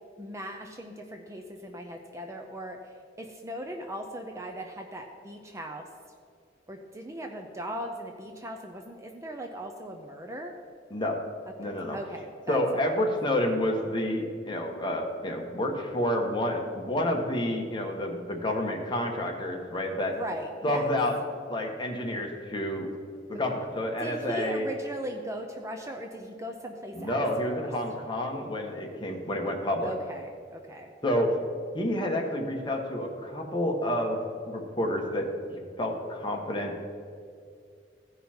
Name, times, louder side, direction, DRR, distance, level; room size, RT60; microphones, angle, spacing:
voice 1, 0.2-5.9 6.7-10.6 11.9-13.1 20.1-20.9 23.3-23.5 24.0-27.6 29.8-30.9, right 1 dB, 15° right, 3 dB, 0.5 m, -39 dB
voice 2, 11.6-12.0 12.5-20.1 20.6-21.1 21.5-22.9 23.3-24.7 26.9-29.9 31.0-31.3 31.7-34.2 34.5-35.3 35.8-36.8, left 1 dB, 25° left, 1 dB, 1.2 m, -29 dB
15.5 x 5.5 x 4.3 m, 2.3 s
head